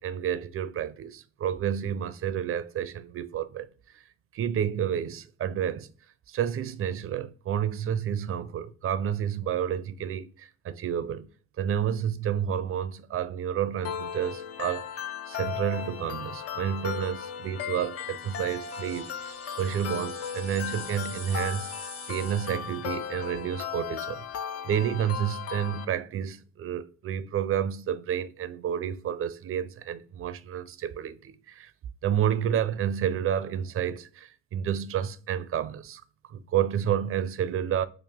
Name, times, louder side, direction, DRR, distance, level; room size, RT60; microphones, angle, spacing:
voice 1, 0.0-3.7 3.9-4.0 4.3-5.9 6.3-11.3 11.6-14.9 15.3-21.7 22.1-24.2 24.6-31.7 32.0-36.0 36.3-37.9, right 9 dB, 45° right, 0.4 m, -30 dB
sound 1, 13.8-25.8, left 8 dB, 50° left, 0.5 m, -36 dB
sound 2, 18.0-22.8, left 1 dB, 20° left, 0.9 m, -46 dB
2.9 x 2.5 x 3.5 m
cardioid pair, 90°, 30 cm